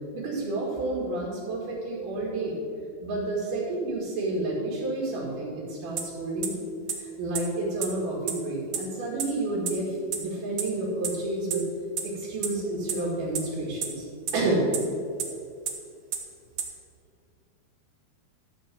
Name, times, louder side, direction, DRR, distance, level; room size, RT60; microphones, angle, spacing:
voice 1, 0.1-2.6 3.0-6.5 7.0-11.6 12.0-14.0 14.3-14.6, right 2 dB, 60° right, -6 dB, 3.3 m, -30 dB
sound 1, 6.0-6.1 6.4-6.5 6.9-7.0 7.4-7.5 7.8-7.9 8.3-8.4 8.7-8.8 9.2-9.3 9.7-9.8 10.1-10.2 10.6-10.7 11.0-11.1 11.5-11.6 12.0-12.1 12.4-12.5 12.9-13.0 13.4-13.5 13.8-13.9 14.3-14.4 14.7-14.8 15.2-15.3 15.7-15.8 16.1-16.2 16.6-16.7, right 9 dB, 85° right, 1.5 m, -27 dB
12.0 x 4.6 x 7.5 m, 2.3 s
omnidirectional pair, 4.4 m